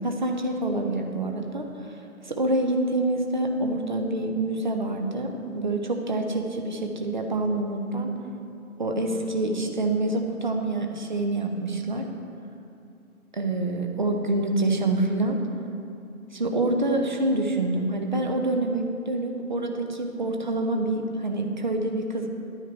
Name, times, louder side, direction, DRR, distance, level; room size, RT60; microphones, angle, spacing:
voice 1, 0.0-1.7 2.2-8.1 8.8-12.0 13.3-15.4 16.3-22.3, right 2 dB, 35° right, 3 dB, 0.9 m, -26 dB
11.5 x 9.1 x 4.4 m, 2.7 s
figure-of-eight pair, 150°, 43 cm